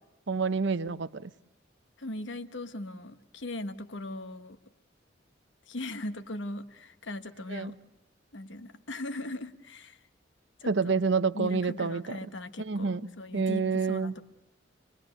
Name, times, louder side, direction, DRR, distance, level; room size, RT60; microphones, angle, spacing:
voice 1, 0.3-1.3 7.5-7.7 10.7-12.3 12.6-13.1 13.3-14.1, right 4 dB, 65° right, 14 dB, 0.8 m, -28 dB
voice 2, 2.0-4.6 5.7-7.7 8.3-10.0 10.6-10.9 11.3-14.2, left 1 dB, 75° left, 10 dB, 1.3 m, -39 dB
25.0 x 22.5 x 6.7 m, 0.92 s
head